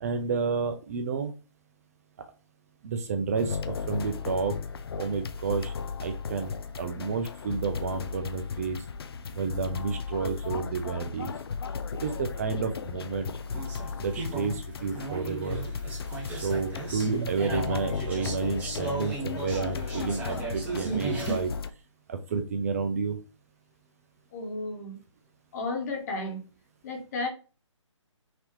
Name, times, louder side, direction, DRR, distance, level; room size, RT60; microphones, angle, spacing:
voice 1, 0.0-1.3 2.8-4.5 5.0-5.7 6.0-8.8 9.4-11.3 12.0-13.3 14.0-15.6 16.3-21.5 22.1-23.2, right 5 dB, 30° right, 0.5 m, -30 dB
sound 1, 3.4-21.7, left 5 dB, 50° left, 0.5 m, -36 dB
sound 2, 13.4-21.4, right 3 dB, 10° right, 1.1 m, -35 dB
voice 2, 24.3-25.0 25.5-26.4 26.8-27.3, left 2 dB, 30° left, 1.3 m, -33 dB
5.9 x 2.8 x 3.2 m
figure-of-eight pair, 145°, 16 cm